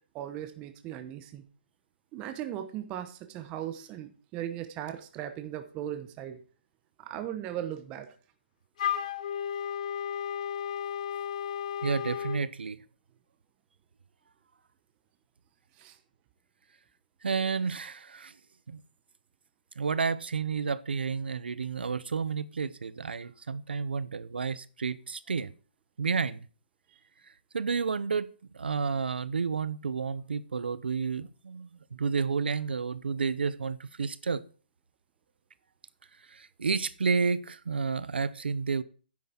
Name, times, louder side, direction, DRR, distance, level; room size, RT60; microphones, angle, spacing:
voice 1, 0.1-1.4 2.1-6.4 7.0-8.1 15.8-16.0, right 11 dB, 20° right, 0.8 m, -38 dB
Wind instrument woodwind instrument, 8.8-12.4, left 9 dB, 45° left, 0.9 m, -33 dB
voice 2, 11.8-12.8 17.2-18.3 18.7-18.8 19.8-25.5 26.0-26.5 27.5-28.3 28.5-34.4 36.3-38.8, right 5 dB, 90° right, 0.8 m, -31 dB
9.8 x 7.6 x 4.4 m
hypercardioid pair, 160°, 5 cm